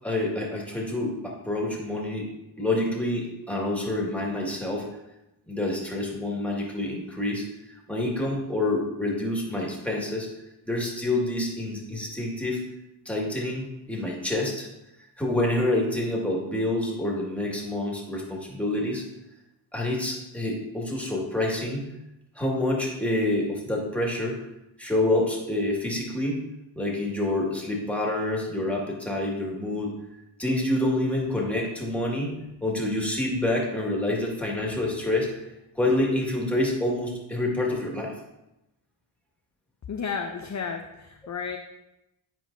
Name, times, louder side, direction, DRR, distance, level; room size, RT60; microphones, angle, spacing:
voice 1, 0.0-4.9 5.5-10.3 10.7-12.6 13.1-14.7 15.2-19.0 19.7-21.9 22.4-24.4 24.8-26.4 26.8-30.0 30.4-35.5 35.7-38.1, left 1 dB, 5° left, -2 dB, 1.9 m, -27 dB
voice 2, 39.9-41.6, left 6 dB, 35° left, 4 dB, 0.6 m, -32 dB
9.1 x 4.6 x 2.6 m, 0.92 s
cardioid pair, 50°, 49 cm